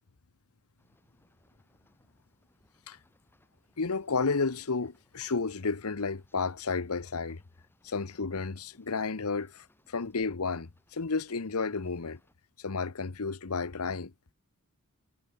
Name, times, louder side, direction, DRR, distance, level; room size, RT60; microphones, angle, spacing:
sound 1, 0.8-12.4, left 1 dB, 10° left, 6.4 m, -68 dB
voice 1, 3.8-7.4 7.8-12.2 12.6-14.1, left 4 dB, 80° left, 1.0 m, -32 dB
head